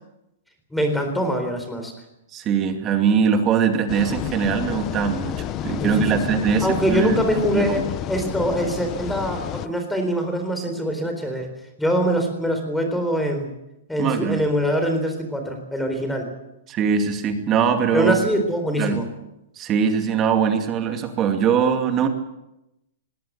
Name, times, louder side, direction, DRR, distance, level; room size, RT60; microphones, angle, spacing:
voice 1, 0.7-1.9 5.8-6.2 6.6-11.5 11.8-13.5 13.9-16.3 17.9-19.0, equal, 5° left, 5 dB, 3.9 m, -23 dB
voice 2, 2.3-7.2 7.5-7.8 14.0-14.4 16.7-18.2 18.8-19.0 19.6-22.1, right 7 dB, 25° right, 6 dB, 2.4 m, -21 dB
sound 1, 3.9-9.7, left 12 dB, 25° left, 0.7 m, -30 dB
20.0 x 17.5 x 8.2 m, 0.90 s
hypercardioid pair, 160°, 0 cm